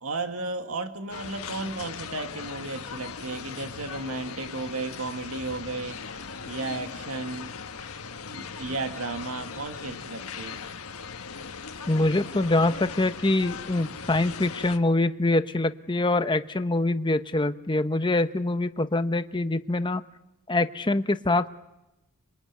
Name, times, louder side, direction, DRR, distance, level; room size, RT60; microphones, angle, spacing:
voice 1, 0.0-6.0 6.5-7.5 8.3-10.6, right 3 dB, 70° right, 7 dB, 1.9 m, -34 dB
sound 1, 1.1-14.8, left 5 dB, 75° left, 1.4 m, -39 dB
voice 2, 11.9-20.0 20.5-21.5, left 2 dB, 20° left, 10 dB, 0.9 m, -24 dB
26.5 x 23.0 x 9.4 m, 0.93 s
head